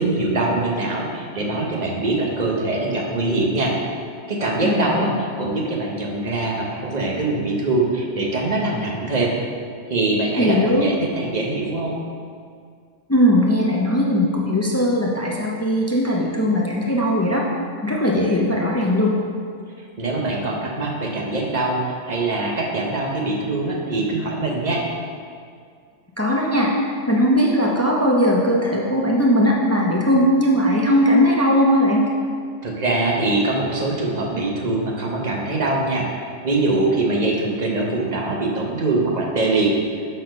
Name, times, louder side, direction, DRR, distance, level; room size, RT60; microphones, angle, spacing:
voice 1, 0.0-3.7 4.3-9.3 9.9-12.0 19.8-24.8 32.6-39.7, right 2 dB, 35° right, -1 dB, 1.0 m, -23 dB
voice 2, 4.6-5.1 10.4-10.9 13.1-17.4 17.8-19.1 26.2-32.0, equal, 20° left, -2 dB, 0.4 m, -19 dB
6.5 x 4.2 x 5.2 m, 2.1 s
omnidirectional pair, 1.3 m